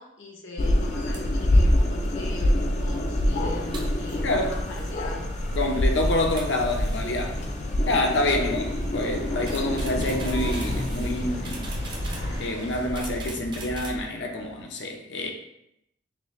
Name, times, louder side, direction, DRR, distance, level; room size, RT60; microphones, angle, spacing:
voice 1, 0.0-5.3 8.4-8.7, left 2 dB, 85° left, 1.0 m, -41 dB
sound 1, 0.6-12.5, left 1 dB, 35° left, 0.3 m, -26 dB
sound 2, 0.9-14.1, right 1 dB, 25° right, 0.5 m, -39 dB
sound 3, 3.2-14.6, right 1 dB, 65° right, 1.0 m, -43 dB
voice 2, 4.2-4.5 5.5-7.4 7.9-11.7 12.4-15.3, left 1 dB, 65° left, 0.7 m, -27 dB
6.0 x 2.1 x 3.1 m
head